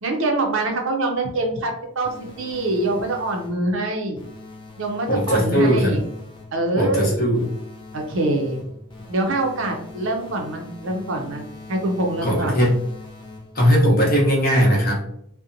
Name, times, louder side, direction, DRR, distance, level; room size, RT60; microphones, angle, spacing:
voice 1, 0.0-4.2 4.8-6.0 6.5-7.2 7.9-8.6 9.1-12.6, right 2 dB, 55° right, 2 dB, 0.5 m, -24 dB
sound 1, 2.0-3.7 4.2-6.7 7.3-13.7, left 2 dB, 20° left, 0.4 m, -41 dB
voice 2, 5.1-6.0 6.8-7.5 12.2-12.8 13.5-15.1, equal, 40° left, -3 dB, 0.8 m, -18 dB
2.8 x 2.1 x 2.5 m, 0.73 s
head